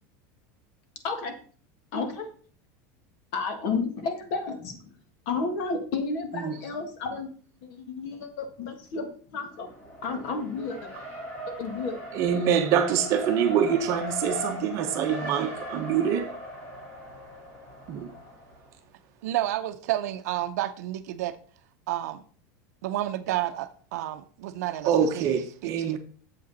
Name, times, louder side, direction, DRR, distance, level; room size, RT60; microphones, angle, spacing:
voice 1, 1.9-2.3 3.3-4.8 5.2-7.3 7.7-9.7 10.0-10.9 11.6-12.0, left 4 dB, 45° left, 1.6 m, -31 dB
Race car auto racing, 9.6-18.7, equal, 20° left, 2.3 m, -38 dB
voice 2, 12.1-16.4 17.9-18.1 24.8-26.0, right 8 dB, 35° right, 0.9 m, -25 dB
voice 3, 19.2-21.4 21.9-22.2 22.8-24.9 25.9-26.0, right 14 dB, 75° right, 0.7 m, -30 dB
7.7 x 7.5 x 4.1 m
supercardioid pair, 175°, 9 cm